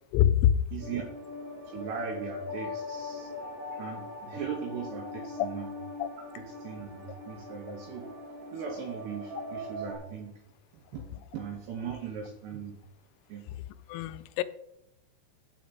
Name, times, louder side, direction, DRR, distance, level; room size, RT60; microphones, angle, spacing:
voice 1, 0.1-0.6 5.4-5.5 6.0-6.1 13.9-14.4, left 11 dB, 90° left, 15 dB, 3.3 m, -24 dB
voice 2, 0.7-1.0 1.7-3.3 3.8-5.7 6.4-8.1 8.5-10.4 10.7-12.8 13.3-13.5, right 6 dB, 75° right, 2 dB, 2.5 m, -39 dB
sound 1, 0.8-10.0, left 2 dB, 45° right, 2.1 m, -41 dB
8.8 x 8.3 x 3.9 m, 0.82 s
omnidirectional pair, 6.0 m